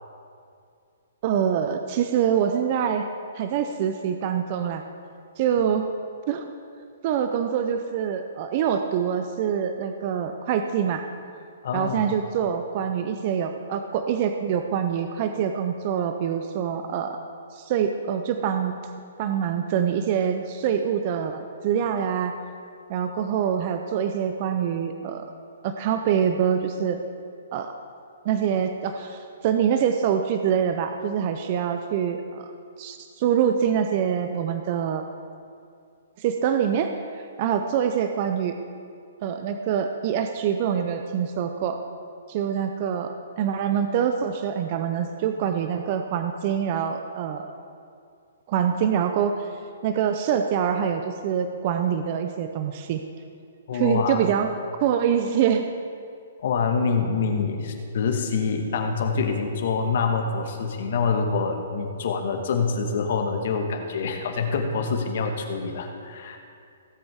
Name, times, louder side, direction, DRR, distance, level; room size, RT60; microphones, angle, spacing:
voice 1, 1.2-3.1 3.3-4.8 5.4-5.9 6.3-6.5 7.0-11.0 11.7-17.2 17.5-18.9 19.2-22.3 22.9-25.3 25.6-27.0 27.5-27.7 28.2-32.5 32.8-35.0 36.2-36.9 37.4-38.6 39.2-41.8 42.3-47.5 48.5-49.5 49.8-53.0 53.7-54.5 54.8-55.6, right 8 dB, 40° right, 6 dB, 0.6 m, -25 dB
voice 2, 11.6-12.0 53.7-54.3 56.4-66.4, left 5 dB, 60° left, 4 dB, 1.5 m, -26 dB
17.5 x 7.8 x 3.6 m, 2.4 s
hypercardioid pair, 140°, 0 cm